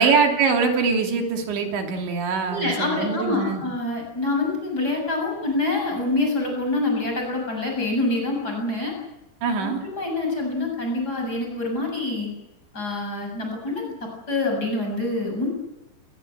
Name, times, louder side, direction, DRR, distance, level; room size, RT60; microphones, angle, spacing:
voice 1, 0.0-3.6 9.4-9.8, right 5 dB, 75° right, 3 dB, 4.9 m, -23 dB
voice 2, 2.5-8.9 9.6-12.3 12.7-15.5, left 2 dB, 20° left, 1 dB, 7.7 m, -26 dB
23.5 x 22.0 x 8.0 m, 1.0 s
omnidirectional pair, 5.3 m